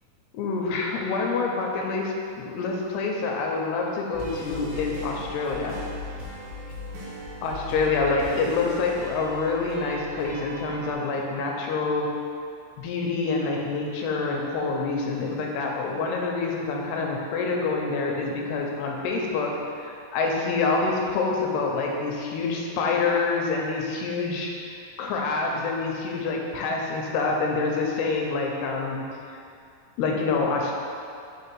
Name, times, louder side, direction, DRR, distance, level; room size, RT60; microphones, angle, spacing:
voice 1, 0.3-5.8 7.4-12.1 12.8-29.0 30.0-30.7, left 4 dB, 85° left, 0 dB, 2.7 m, -27 dB
sound 1, 4.1-10.9, left 1 dB, 90° right, 3.0 m, -38 dB
6.7 x 3.3 x 4.6 m, 2.4 s
omnidirectional pair, 4.5 m